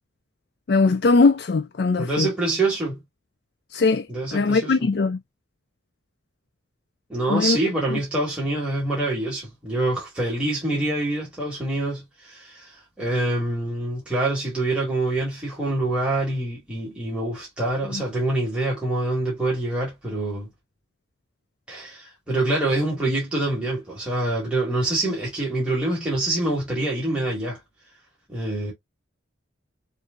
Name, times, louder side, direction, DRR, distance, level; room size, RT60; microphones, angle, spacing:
voice 1, 0.7-2.3 3.7-4.1 4.3-5.2 7.3-7.6 7.9-8.0 17.9-18.0, left 3 dB, 50° left, 0.4 m, -20 dB
voice 2, 2.0-3.0 4.1-4.9 7.1-20.5 21.7-27.6 28.3-28.7, right 2 dB, 5° right, 2.1 m, -26 dB
6.6 x 2.7 x 2.4 m
head